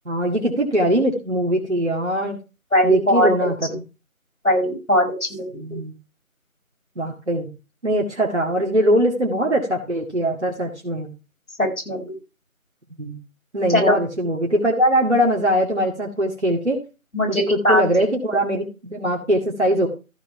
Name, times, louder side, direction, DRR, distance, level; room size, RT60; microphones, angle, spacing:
voice 1, 0.1-2.4 2.8-3.8 5.5-6.0 7.0-7.5 7.8-11.1 13.0-13.2 13.5-16.8 17.3-19.9, equal, 55° right, 0 dB, 2.3 m, -21 dB
voice 2, 2.7-3.3 4.4-5.5 11.6-12.2 13.7-14.0 17.1-17.8, left 1 dB, 75° left, 2 dB, 4.9 m, -19 dB
14.0 x 5.0 x 5.8 m, 0.30 s
figure-of-eight pair, 175°, 42 cm